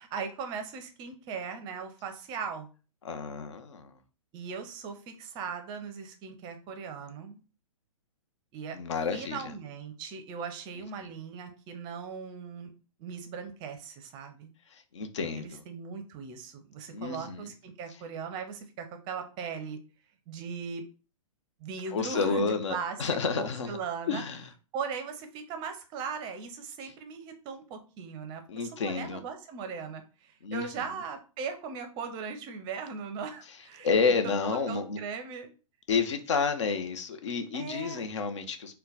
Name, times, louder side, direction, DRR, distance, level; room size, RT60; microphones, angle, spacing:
voice 1, 0.0-2.7 4.3-7.4 8.5-8.8 9.1-12.7 13.0-14.5 15.4-19.8 20.3-20.8 21.6-24.2 24.7-33.9 34.2-35.5 37.5-38.1, right 6 dB, 25° right, 7 dB, 0.6 m, -39 dB
voice 2, 3.0-3.9 8.7-9.4 11.0-11.1 14.7-15.6 16.9-17.5 21.9-23.8 24.1-24.5 26.8-26.9 28.5-29.2 30.4-30.6 33.8-35.0 35.9-38.8, left 5 dB, 60° left, 8 dB, 0.7 m, -30 dB
3.9 x 2.2 x 3.9 m, 0.35 s
figure-of-eight pair, 120°, 18 cm